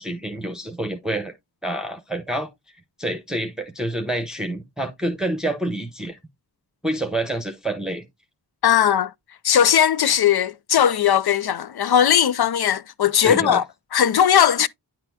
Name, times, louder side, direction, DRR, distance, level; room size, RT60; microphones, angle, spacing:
voice 1, 0.0-1.3 1.6-2.5 3.0-6.2 6.8-8.0 13.2-13.6, right 1 dB, ahead, 1.0 m, -27 dB
voice 2, 8.6-9.1 9.4-13.6 13.9-14.7, left 9 dB, 65° left, 0.5 m, -18 dB
9.9 x 4.3 x 2.7 m
wide cardioid pair, 60°, 42 cm